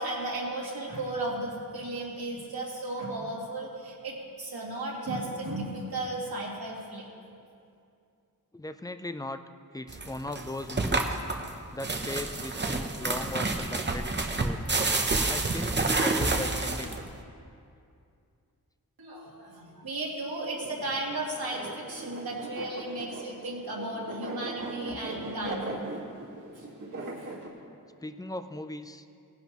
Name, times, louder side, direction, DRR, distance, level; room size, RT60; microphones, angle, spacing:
voice 1, 0.0-7.0 19.0-25.7, right 2 dB, 80° right, -4 dB, 2.5 m, -35 dB
voice 2, 8.5-9.4 9.7-11.2 11.7-14.7 15.3-17.0 28.0-29.0, left 2 dB, 10° left, 10 dB, 0.4 m, -38 dB
sound 1, 9.9-17.2, right 3 dB, 30° right, 0.8 m, -29 dB
sound 2, 20.6-27.5, right 2 dB, 55° right, 1.9 m, -39 dB
17.5 x 10.5 x 3.0 m, 2.4 s
wide cardioid pair, 115°, 36 cm